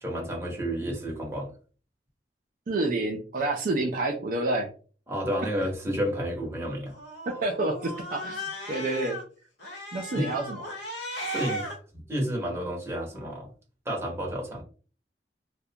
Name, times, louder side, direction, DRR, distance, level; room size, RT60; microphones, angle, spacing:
voice 1, 0.0-1.5 5.1-6.9 10.1-10.3 11.3-13.5 13.8-14.6, equal, 15° right, -1 dB, 0.7 m, -31 dB
voice 2, 2.7-4.7 7.3-8.4 8.7-9.2 9.9-10.6, right 2 dB, 50° right, 2 dB, 0.4 m, -28 dB
Cat, 6.9-9.2 9.6-11.7, equal, 90° left, 0.8 m, -36 dB
2.3 x 2.1 x 2.7 m, 0.39 s
head